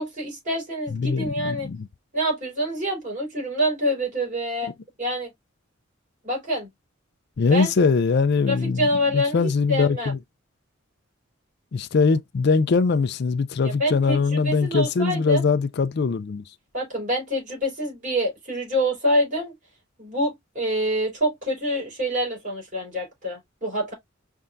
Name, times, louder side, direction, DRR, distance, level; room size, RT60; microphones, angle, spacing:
voice 1, 0.0-1.7 2.1-4.7 5.0-5.3 6.2-6.7 7.5-7.7 8.5-10.1 13.6-15.4 16.7-19.5 20.0-23.9, equal, 40° right, 4.1 m, -26 dB
voice 2, 0.9-1.9 7.4-10.2 11.7-16.4, left 4 dB, 55° left, 0.4 m, -22 dB
5.5 x 3.5 x 2.5 m
head